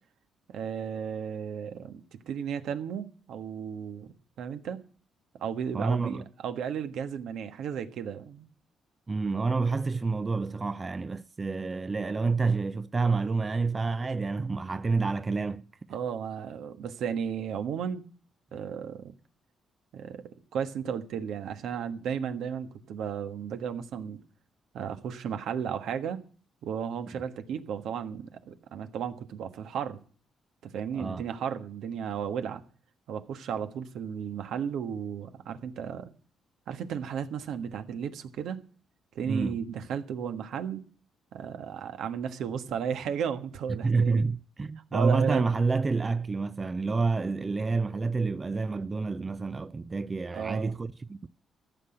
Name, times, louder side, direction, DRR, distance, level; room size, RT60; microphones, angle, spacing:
voice 1, 0.5-4.1 4.4-4.8 5.4-8.5 15.9-18.0 18.5-19.1 19.9-20.2 20.5-24.2 24.7-26.2 26.6-30.0 30.6-32.6 33.1-36.1 36.7-38.6 39.1-40.8 41.3-44.2 44.9-45.5 50.3-50.7, right 7 dB, 75° right, 1.4 m, -34 dB
voice 2, 5.7-6.2 9.1-15.6 30.9-31.2 39.3-39.6 43.8-51.3, right 4 dB, 30° right, 0.5 m, -28 dB
14.0 x 6.1 x 9.7 m
cardioid pair, 90°, 0 cm